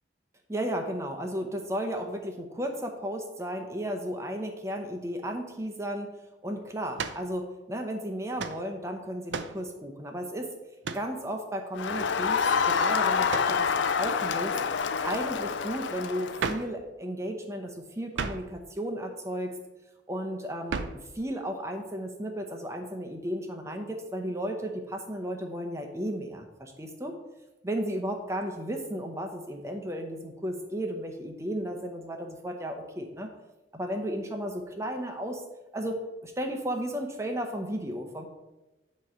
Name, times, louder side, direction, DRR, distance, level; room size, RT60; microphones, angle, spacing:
voice 1, 0.5-6.1 6.4-10.5 10.9-14.6 15.0-19.5 20.1-27.1 27.6-33.3 33.7-35.4 35.7-38.2, equal, 15° right, 3 dB, 0.7 m, -34 dB
sound 1, 7.0-7.3 8.4-8.6 9.3-9.6 10.8-11.1 13.3-13.6 16.4-16.8 18.1-18.5 20.7-21.1, right 5 dB, 85° right, 0.5 m, -33 dB
Crowd, 11.8-16.6, left 6 dB, 90° left, 0.5 m, -27 dB
9.0 x 3.1 x 5.6 m, 1.0 s
head